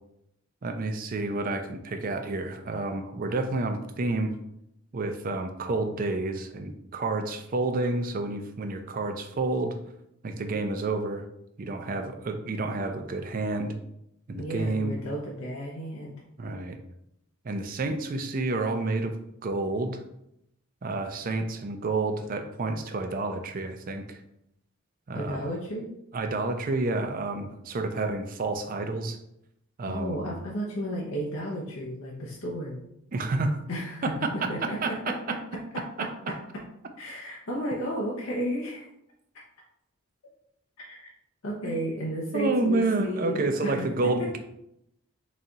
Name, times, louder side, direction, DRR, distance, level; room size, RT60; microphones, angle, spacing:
voice 1, 0.6-4.3 4.9-9.7 10.2-11.2 11.6-13.7 14.3-14.9 16.4-16.8 17.4-19.1 19.4-20.0 20.8-24.2 25.1-25.5 26.1-29.2 29.8-30.2 33.1-33.6 34.0-35.1 36.0-36.1 41.6-41.7 42.3-44.4, right 2 dB, 40° right, 6 dB, 0.4 m, -29 dB
voice 2, 14.3-16.1 25.1-25.9 29.9-32.8 33.7-35.4 35.7-36.4 37.0-38.9 40.8-41.1 41.4-44.1, equal, 75° left, -4 dB, 0.7 m, -33 dB
4.1 x 2.3 x 3.8 m, 0.79 s
head